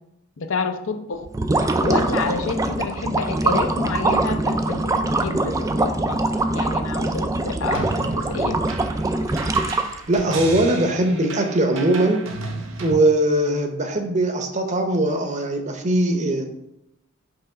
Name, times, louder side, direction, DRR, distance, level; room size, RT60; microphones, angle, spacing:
voice 1, 0.4-1.3 1.8-6.2 6.5-8.6, left 4 dB, 65° left, 7 dB, 0.6 m, -28 dB
sound 1, 1.3-10.2, right 2 dB, 15° right, 0.3 m, -23 dB
sound 2, 7.7-12.9, right 3 dB, 65° right, 0.9 m, -34 dB
voice 2, 10.1-12.3 12.8-16.5, right 1 dB, 35° right, 5 dB, 0.8 m, -20 dB
5.6 x 3.3 x 5.6 m, 0.80 s
head